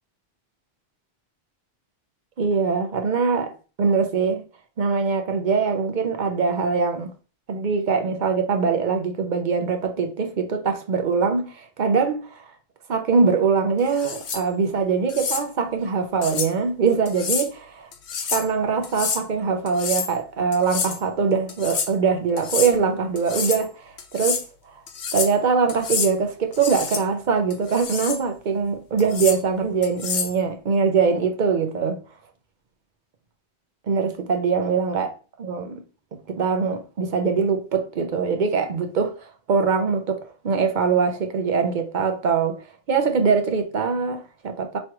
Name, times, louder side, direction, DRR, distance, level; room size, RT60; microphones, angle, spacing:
voice 1, 2.4-3.5 3.8-4.4 4.8-7.1 7.5-12.4 12.9-17.9 18.3-24.4 25.1-32.0 33.9-35.8 36.1-44.8, right 5 dB, 50° right, 0.7 m, -23 dB
sound 1, 13.9-14.4 15.1-15.4 16.2-16.5 17.1-17.5 17.9-18.5 18.8-19.2 19.7-20.1 20.5-21.0 21.5-21.9 22.4-22.7 23.2-23.6 24.0-24.4 24.9-25.4 25.7-26.1 26.5-27.0 27.5-28.2 29.0-29.4 29.8-30.4, left 6 dB, 80° left, 1.0 m, -28 dB
4.8 x 3.1 x 2.9 m
omnidirectional pair, 1.1 m